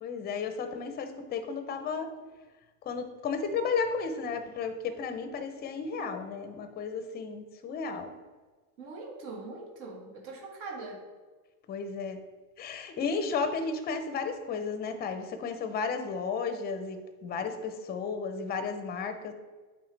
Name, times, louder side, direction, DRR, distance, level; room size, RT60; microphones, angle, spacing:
voice 1, 0.0-2.1 2.9-8.1 11.7-12.2 12.6-19.3, left 5 dB, 20° left, 8 dB, 0.5 m, -33 dB
voice 2, 8.8-11.0, right 3 dB, 55° right, -1 dB, 1.8 m, -42 dB
8.5 x 3.8 x 3.3 m, 1.3 s
supercardioid pair, 125°, 48 cm